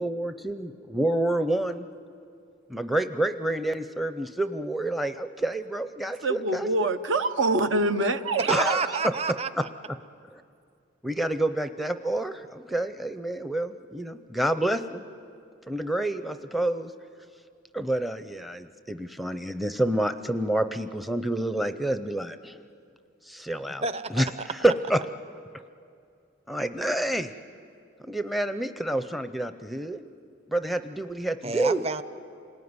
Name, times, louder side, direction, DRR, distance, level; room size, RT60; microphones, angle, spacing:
voice 1, 0.0-1.9 2.7-6.9 8.5-9.1 10.3-10.4 11.0-15.0 15.7-16.9 17.7-22.6 23.3-23.8 24.1-25.0 26.5-27.3 28.1-30.0 30.5-31.8, right 1 dB, ahead, 10 dB, 0.5 m, -28 dB
voice 2, 6.2-9.0, right 2 dB, 75° right, 9 dB, 0.9 m, -25 dB
voice 3, 8.5-9.7 23.8-24.2 31.4-32.0, right 4 dB, 30° right, 12 dB, 0.7 m, -29 dB
28.0 x 19.5 x 9.6 m, 2.4 s
head